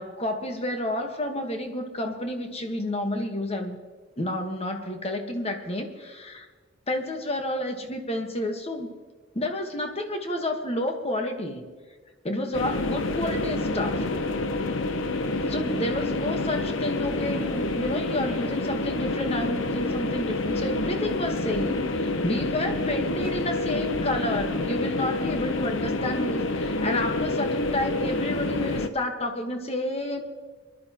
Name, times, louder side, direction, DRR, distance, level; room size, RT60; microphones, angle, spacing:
voice 1, 0.0-3.8 4.2-6.5 6.9-8.9 9.3-11.6 12.2-14.1 15.5-30.2, left 1 dB, 30° left, 4 dB, 1.4 m, -30 dB
sound 1, 12.5-28.9, left 2 dB, 80° left, 0.8 m, -28 dB
23.5 x 11.5 x 3.0 m, 1.4 s
head